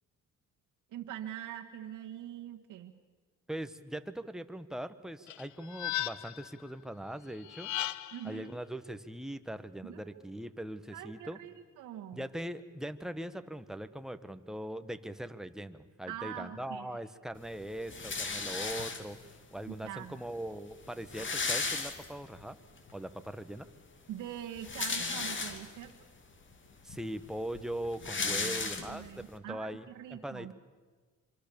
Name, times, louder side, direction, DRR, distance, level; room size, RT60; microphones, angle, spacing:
voice 1, 0.9-2.9 8.1-8.5 9.8-10.2 10.9-12.3 16.1-16.9 19.7-20.2 24.1-25.9 28.2-30.5, right 11 dB, 85° right, 2 dB, 1.5 m, -43 dB
voice 2, 3.5-7.7 8.2-11.4 12.1-22.6 22.9-23.7 26.8-30.5, right 1 dB, ahead, 9 dB, 1.3 m, -41 dB
sound 1, 5.3-6.5 7.4-8.3, left 14 dB, 70° left, 0.8 m, -36 dB
sound 2, 17.9-19.3 20.2-20.3 20.5-20.6 20.8-22.4 22.9-23.0 24.4-25.9 26.5-26.6 26.9-29.2, left 4 dB, 40° left, 2.7 m, -35 dB
26.0 x 24.0 x 7.0 m, 1.4 s
cardioid pair, 90°, 30 cm